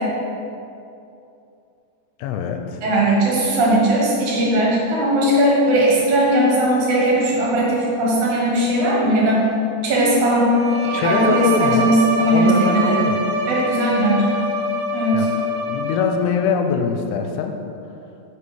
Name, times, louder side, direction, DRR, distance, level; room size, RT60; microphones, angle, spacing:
voice 1, 2.2-2.8 10.9-12.0 12.3-13.2 15.1-15.3 15.7-17.6, left 6 dB, 85° left, 5 dB, 2.4 m, -22 dB
voice 2, 2.8-9.4 9.8-10.5 10.8-13.0 13.5-14.3 14.9-15.3, right 1 dB, 60° right, -4 dB, 2.4 m, -18 dB
Bowed string instrument, 10.5-16.3, right 1 dB, 90° right, 3.0 m, -24 dB
6.4 x 5.4 x 4.8 m, 2.6 s
omnidirectional pair, 4.5 m